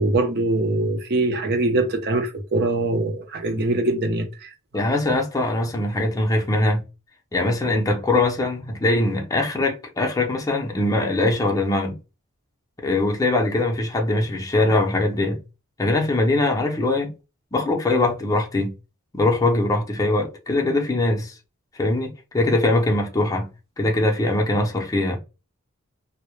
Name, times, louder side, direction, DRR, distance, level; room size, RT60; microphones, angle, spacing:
voice 1, 0.0-4.5, right 2 dB, 50° right, 0.5 m, -23 dB
voice 2, 4.7-6.8 7.3-12.0 12.8-15.4 15.8-17.1 17.5-18.7 19.1-21.3 21.7-23.5 23.8-25.2, left 2 dB, 15° left, 0.5 m, -22 dB
2.1 x 2.0 x 3.0 m
head